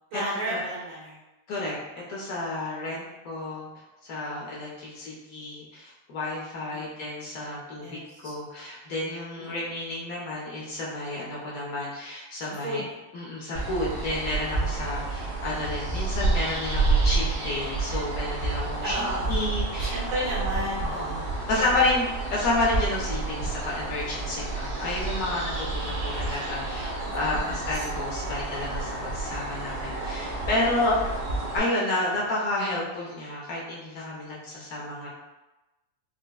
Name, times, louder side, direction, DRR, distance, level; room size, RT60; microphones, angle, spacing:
voice 1, 0.1-1.2 2.9-3.0 6.7-7.1 7.8-8.3 9.4-9.8 12.6-12.8 18.8-19.5 19.8-21.6 25.8-25.9 27.0-27.9, right 1 dB, 75° right, -7 dB, 1.7 m, -34 dB
voice 2, 2.1-3.7 4.0-12.8 13.1-19.9 20.8-21.2 21.5-31.0 31.5-35.1, left 2 dB, 65° left, -5 dB, 0.9 m, -30 dB
sound 1, 13.5-31.6, right 3 dB, 55° right, 0.9 m, -30 dB
4.8 x 2.1 x 2.3 m, 1.0 s
omnidirectional pair, 2.3 m